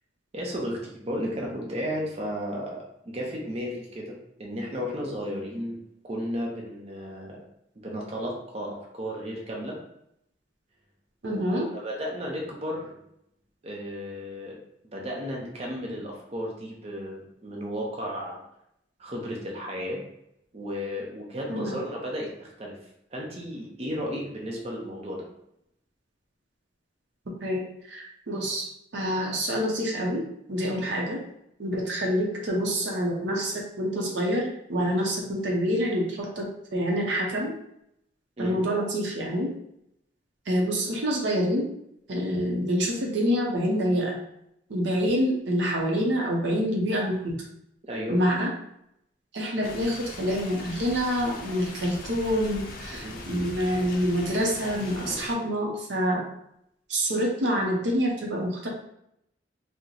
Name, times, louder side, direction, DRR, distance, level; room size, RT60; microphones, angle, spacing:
voice 1, 0.3-5.8 6.0-7.4 7.8-9.8 11.3-11.4 11.7-12.9 13.6-14.6 14.9-18.4 19.0-20.0 20.5-22.8 23.1-25.3 30.7-30.9 38.4-38.6 47.8-48.2 52.9-53.2 55.0-55.5, equal, 35° right, -2 dB, 0.6 m, -34 dB
voice 2, 11.2-11.7 21.5-21.8 27.4-30.2 30.5-31.2 31.6-37.5 38.4-39.5 40.5-41.7 42.1-44.2 44.7-47.4 48.1-48.5 49.3-56.2 56.9-58.7, equal, 70° right, -1 dB, 0.6 m, -27 dB
sound 1, 49.6-55.3, left 2 dB, 50° left, 0.5 m, -40 dB
2.9 x 2.0 x 3.8 m, 0.77 s
head